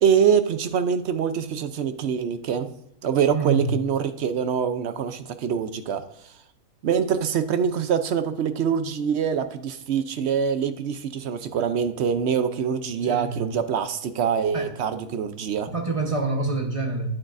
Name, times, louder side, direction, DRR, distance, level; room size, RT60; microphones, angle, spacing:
voice 1, 0.0-2.7 3.0-6.0 6.8-15.7, right 7 dB, 60° right, 10 dB, 0.7 m, -24 dB
voice 2, 3.3-3.7 13.0-13.4 14.5-14.7 15.7-17.1, right 3 dB, 25° right, 3 dB, 0.9 m, -27 dB
8.8 x 8.6 x 2.5 m, 0.76 s
omnidirectional pair, 1.5 m